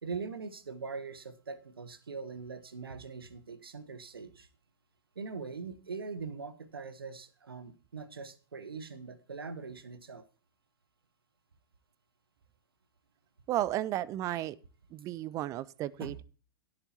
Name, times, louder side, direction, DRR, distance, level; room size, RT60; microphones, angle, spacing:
voice 1, 0.0-4.5 5.1-10.2 16.0-16.1, right 4 dB, 75° right, 15 dB, 1.2 m, -42 dB
voice 2, 13.5-14.6 14.9-16.2, right 13 dB, 25° right, 22 dB, 0.4 m, -33 dB
16.5 x 8.8 x 2.9 m, 0.36 s
figure-of-eight pair, 100°, 12 cm